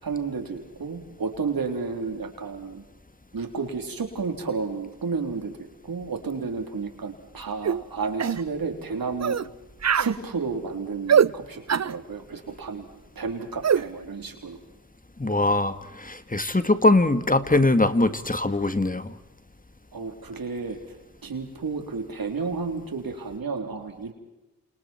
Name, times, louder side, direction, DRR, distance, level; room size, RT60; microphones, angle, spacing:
voice 1, 0.0-2.8 3.3-5.5 5.9-9.4 9.9-12.8 13.2-14.6 19.9-20.8 21.2-24.1, right 4 dB, 75° right, 5 dB, 3.8 m, -31 dB
sound 1, 7.6-7.8 8.2-8.4 9.2-9.5 9.8-10.1 11.1-11.3 11.7-11.9 13.6-13.8, right 7 dB, 50° right, 0.7 m, -21 dB
voice 2, 15.2-19.1, left 2 dB, 25° left, 11 dB, 1.8 m, -22 dB
28.5 x 28.0 x 4.6 m, 0.98 s
cardioid pair, 45°, 35 cm